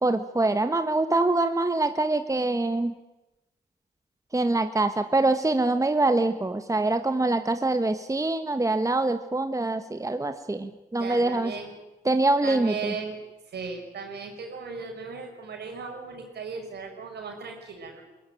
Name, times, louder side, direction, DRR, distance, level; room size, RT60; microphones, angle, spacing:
voice 1, 0.0-2.9 4.3-11.5 12.0-12.9, right 2 dB, 20° right, 9 dB, 1.4 m, -24 dB
voice 2, 11.0-11.7 12.4-13.2 13.5-18.0, right 5 dB, 70° right, 3 dB, 5.5 m, -37 dB
22.0 x 16.0 x 8.9 m, 1.0 s
supercardioid pair, 55°, 18 cm